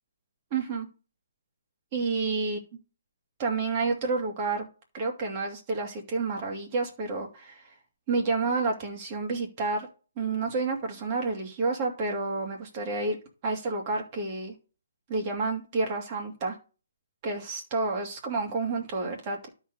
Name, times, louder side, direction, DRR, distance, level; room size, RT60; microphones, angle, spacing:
voice 1, 0.5-0.9 1.9-2.6 3.4-4.7 4.9-7.6 8.1-9.9 10.2-13.2 13.4-14.5 15.1-16.6 17.2-19.5, right 3 dB, 35° right, 1 dB, 2.6 m, -29 dB
12.5 x 4.3 x 4.0 m, 0.35 s
figure-of-eight pair, 140°, 0 cm